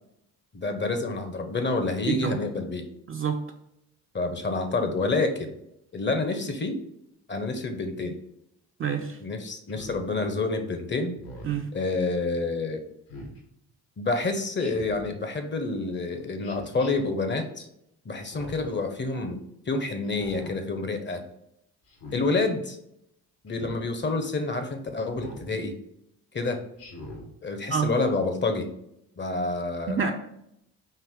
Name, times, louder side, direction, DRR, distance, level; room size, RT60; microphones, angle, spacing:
voice 1, 0.5-2.8 4.1-5.5 5.9-6.8 7.3-8.2 9.2-11.1 11.7-12.8 14.0-17.7 18.0-19.4 19.7-21.2 22.1-22.8 23.4-25.7 26.3-26.6 27.4-28.7 29.2-30.0, left 3 dB, 25° left, 6 dB, 0.8 m, -28 dB
voice 2, 2.1-2.4 3.1-3.4 8.8-9.2 11.4-11.7 27.7-27.9 29.9-30.1, right 6 dB, 30° right, 4 dB, 0.5 m, -27 dB
Speech synthesizer, 9.7-10.0 11.1-11.6 13.1-13.4 14.6-15.1 16.4-16.9 18.2-18.7 20.0-20.5 21.9-22.3 23.5-23.8 25.1-25.5 26.8-27.3, left 1 dB, 70° left, 1.6 m, -42 dB
4.6 x 2.9 x 3.6 m, 0.78 s
hypercardioid pair, 50°, 45 cm